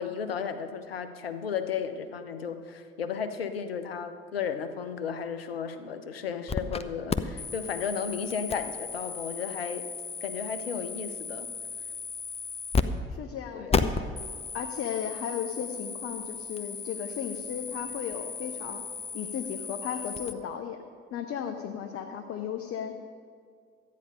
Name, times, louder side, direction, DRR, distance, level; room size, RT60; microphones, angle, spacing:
voice 1, 0.0-9.9 10.2-11.5 13.5-13.9, left 6 dB, 80° left, 10 dB, 0.7 m, -34 dB
Mic unplug interference, 6.5-6.8 7.1-12.8 13.1-13.2 13.7-20.3, left 5 dB, 20° left, 0.6 m, -34 dB
voice 2, 13.1-13.8 14.5-18.8 19.1-20.8 21.1-22.9, left 8 dB, 50° left, 4 dB, 0.9 m, -35 dB
13.5 x 9.4 x 5.3 m, 2.1 s
figure-of-eight pair, 50°, 29 cm